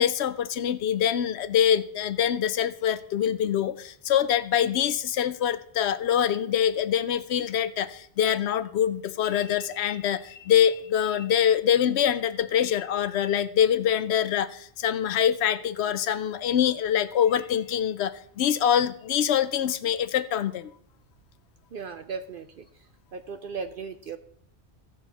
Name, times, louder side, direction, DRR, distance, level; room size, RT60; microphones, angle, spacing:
voice 1, 0.0-14.5 14.8-18.1 18.4-20.7, left 9 dB, 70° left, 14 dB, 0.8 m, -24 dB
voice 2, 21.7-22.6 23.1-24.2, right 5 dB, 60° right, 9 dB, 0.6 m, -36 dB
15.5 x 6.4 x 4.0 m, 0.68 s
omnidirectional pair, 1.2 m